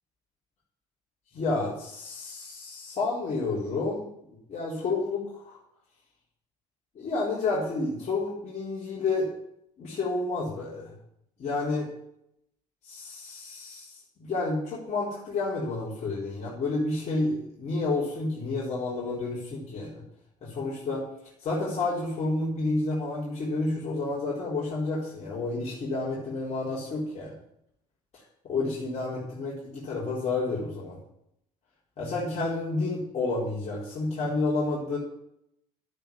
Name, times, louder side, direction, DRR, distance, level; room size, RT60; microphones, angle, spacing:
voice 1, 1.3-4.0 4.5-5.6 6.9-9.3 9.8-10.9 11.4-11.9 12.8-20.0 20.4-21.0 21.4-27.3 28.1-31.0 32.0-35.0, left 3 dB, 35° left, -7 dB, 4.2 m, -30 dB
11.5 x 9.0 x 7.2 m, 0.75 s
figure-of-eight pair, 60°, 20 cm